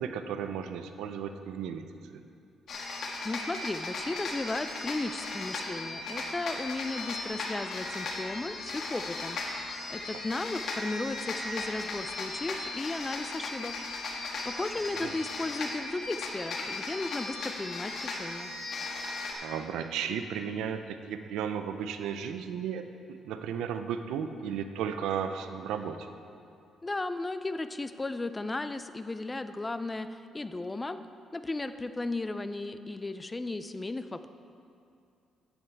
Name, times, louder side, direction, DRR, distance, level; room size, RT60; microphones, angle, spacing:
voice 1, 0.0-2.2 10.1-10.2 15.0-15.2 19.4-26.1, right 8 dB, 90° right, 8 dB, 0.5 m, -35 dB
sound 1, 2.7-19.3, left 3 dB, 65° left, 1.5 m, -37 dB
voice 2, 3.2-13.7 14.1-18.5 26.8-31.0 31.3-34.3, left 2 dB, 20° left, 11 dB, 0.4 m, -35 dB
9.6 x 9.1 x 4.6 m, 2.5 s
cardioid pair, 90°, 0 cm